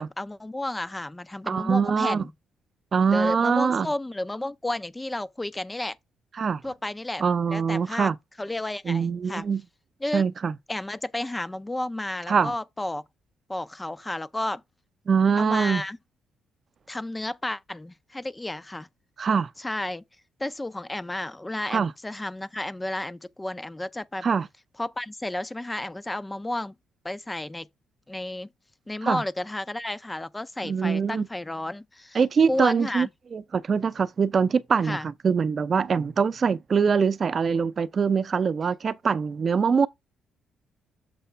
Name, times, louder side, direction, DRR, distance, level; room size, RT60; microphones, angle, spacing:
voice 1, 0.0-2.3 3.1-6.0 6.6-8.1 8.4-9.5 10.0-10.3 10.7-13.0 13.5-14.6 15.4-16.0 16.9-18.9 19.6-20.0 20.4-24.3 24.8-26.7 27.0-27.7 28.1-28.5 28.9-32.2 32.5-33.1 34.8-35.1, left 1 dB, 15° left, 0.4 m, -32 dB
voice 2, 1.5-2.2 2.9-3.9 6.4-6.6 7.2-8.1 8.9-9.6 10.1-10.5 12.3-12.5 15.1-15.8 19.2-19.5 21.7-21.9 24.2-24.5 29.0-29.2 30.6-31.3 32.1-33.1 33.3-35.0 35.2-39.9, right 6 dB, 45° right, 0.6 m, -23 dB
6.8 x 3.1 x 5.6 m
cardioid pair, 90°, 0 cm